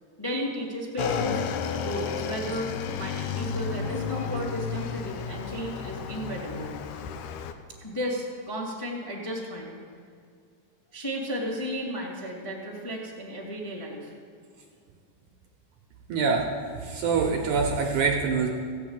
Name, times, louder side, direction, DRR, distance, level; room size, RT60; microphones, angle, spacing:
voice 1, 0.2-1.4 1.8-6.7 7.8-9.8 10.9-14.1, equal, 10° left, -3 dB, 1.4 m, -34 dB
Motorcycle / Engine, 1.0-7.5, left 6 dB, 85° left, 1.7 m, -32 dB
voice 2, 16.1-16.5 16.7-18.5, right 5 dB, 70° right, 1 dB, 2.1 m, -25 dB
15.5 x 6.2 x 8.7 m, 2.2 s
omnidirectional pair, 4.2 m